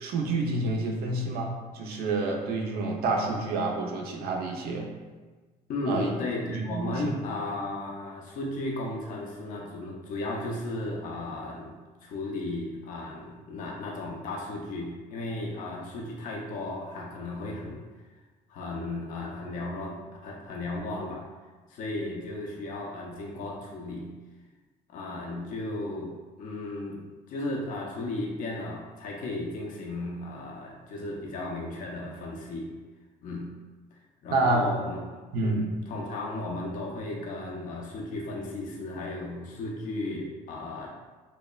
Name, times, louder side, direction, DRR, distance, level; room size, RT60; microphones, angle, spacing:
voice 1, 0.0-4.9 5.9-6.1 6.7-7.2 34.3-34.7 35.3-35.7, right 2 dB, 65° right, 1 dB, 0.4 m, -28 dB
voice 2, 5.7-17.8 18.5-21.2 21.7-24.1 24.9-32.7 33.2-33.5 33.9-40.9, left 2 dB, 50° left, -2 dB, 0.4 m, -35 dB
3.0 x 2.0 x 2.2 m, 1.3 s
cardioid pair, 110°, 17 cm